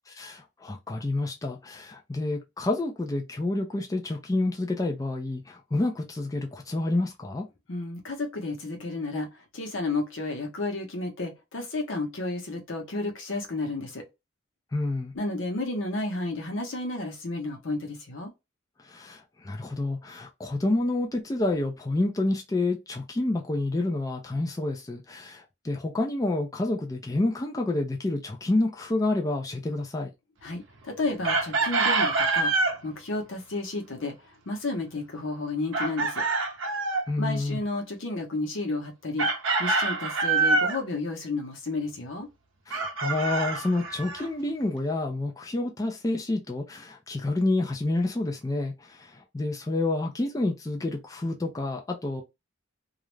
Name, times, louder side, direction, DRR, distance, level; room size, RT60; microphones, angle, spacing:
voice 1, 0.2-7.4 14.7-15.1 18.9-30.1 37.1-37.6 42.7-52.2, left 2 dB, 20° left, 0.4 m, -29 dB
voice 2, 7.7-14.0 15.1-18.3 30.4-32.5 32.8-34.1 34.5-36.2 37.2-39.3 39.6-42.3, left 2 dB, 80° left, 0.8 m, -32 dB
Chicken rooster, 31.2-32.8 35.7-37.1 39.2-40.8 42.7-44.3, right 3 dB, 75° right, 0.6 m, -25 dB
2.4 x 2.0 x 3.0 m
head